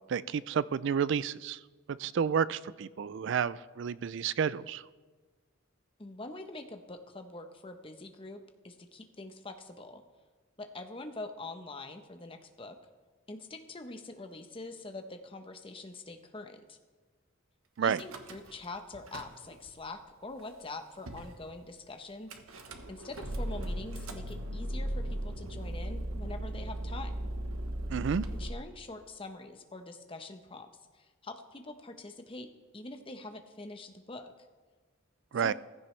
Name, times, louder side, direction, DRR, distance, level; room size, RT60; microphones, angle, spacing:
voice 1, 0.0-1.6 2.0-4.8 17.8-18.0 27.9-28.2 35.3-35.5, right 7 dB, 60° right, 18 dB, 0.3 m, -30 dB
voice 2, 6.0-10.0 10.6-12.8 13.3-16.8 17.8-22.4 22.9-27.3 28.4-30.7 31.2-32.5 32.7-34.3 35.4-35.5, left 2 dB, 25° left, 6 dB, 0.9 m, -44 dB
Car / Engine starting / Idling, 17.9-18.7 18.9-19.7 20.4-20.5 20.6-20.7 21.1-21.3 22.3-28.5, right 1 dB, 90° right, 1.2 m, -37 dB
15.0 x 15.0 x 3.3 m, 1.4 s
head